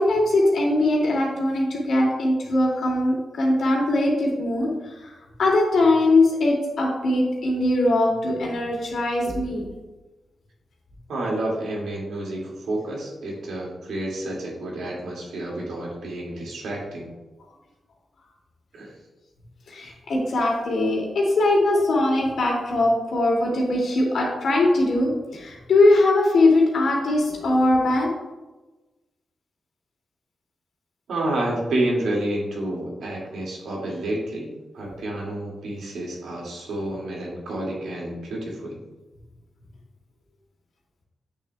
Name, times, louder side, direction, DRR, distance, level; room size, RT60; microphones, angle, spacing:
voice 1, 0.0-5.1 5.4-9.7 19.7-28.1, left 2 dB, 80° left, -2 dB, 2.2 m, -21 dB
voice 2, 11.1-17.1 18.7-19.0 31.1-38.8, right 1 dB, 85° right, -3 dB, 2.1 m, -29 dB
8.4 x 6.8 x 2.3 m, 1.1 s
cardioid pair, 65°, 0 cm